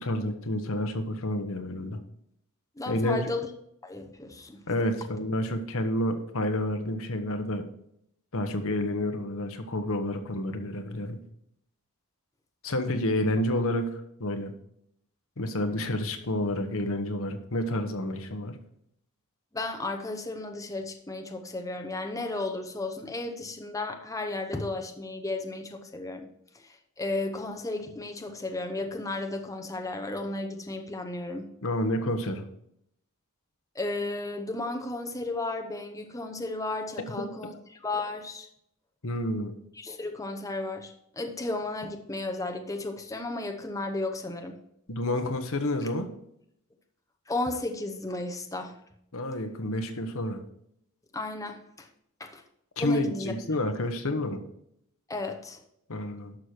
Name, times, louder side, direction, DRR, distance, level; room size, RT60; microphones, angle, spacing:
voice 1, 0.0-2.0 2.9-3.3 4.7-7.6 8.3-11.2 12.6-14.5 15.4-18.6 31.6-32.4 37.2-37.3 39.0-39.5 44.9-46.1 49.1-50.4 52.8-54.4 55.9-56.4, left 1 dB, 65° left, 7 dB, 1.2 m, -29 dB
voice 2, 2.8-3.5 3.8-4.6 19.5-26.3 26.6-31.5 33.7-38.5 39.8-44.6 47.3-48.8 51.1-51.9 52.2-52.4 52.8-53.3 55.1-55.6, left 2 dB, 15° left, 5 dB, 0.8 m, -34 dB
11.5 x 6.4 x 4.5 m, 0.74 s
head